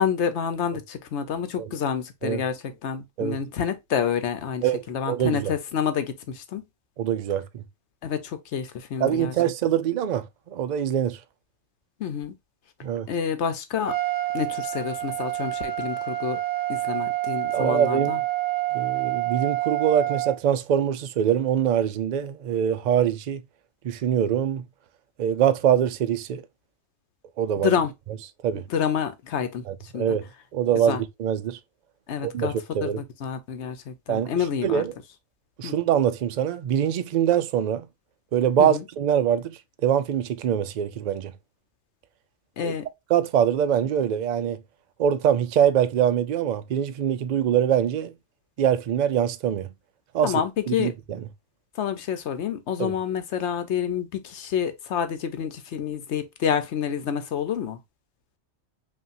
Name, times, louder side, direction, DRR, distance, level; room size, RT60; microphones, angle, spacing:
voice 1, 0.0-6.6 8.0-9.3 12.0-12.3 13.1-14.0 14.3-16.4 16.7-18.2 27.6-27.9 28.5-29.7 29.9-30.1 30.9-31.0 32.1-32.5 32.8-34.8 35.6-35.7 38.6-38.8 42.6-42.9 50.2-50.9 51.8-57.8, left 8 dB, 75° left, 1.0 m, -28 dB
voice 2, 4.6-5.5 7.0-7.6 9.0-11.2 12.8-13.1 17.5-18.1 18.7-23.4 23.8-24.6 25.2-26.4 27.4-27.7 28.4-28.6 29.7-30.3 30.5-31.6 32.2-33.0 34.1-34.3 34.6-34.9 35.6-37.9 38.3-41.3 42.6-42.7 43.1-44.6 45.0-48.1 48.6-49.7 50.1-50.4 50.7-51.2 52.8-52.9, right 9 dB, 60° right, 0.5 m, -24 dB
Trumpet, 13.8-20.4, right 16 dB, 75° right, 1.0 m, -28 dB
5.5 x 2.7 x 2.6 m
omnidirectional pair, 1.2 m